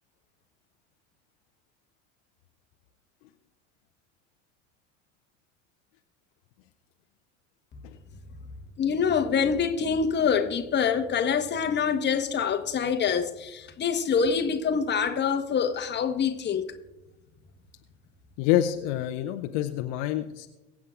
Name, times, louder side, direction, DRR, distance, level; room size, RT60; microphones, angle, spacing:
voice 1, 8.8-16.7, left 6 dB, 30° left, 1.2 m, -25 dB
voice 2, 18.4-20.5, left 12 dB, 55° left, 0.8 m, -27 dB
23.0 x 8.3 x 2.5 m
figure-of-eight pair, 70°, 38 cm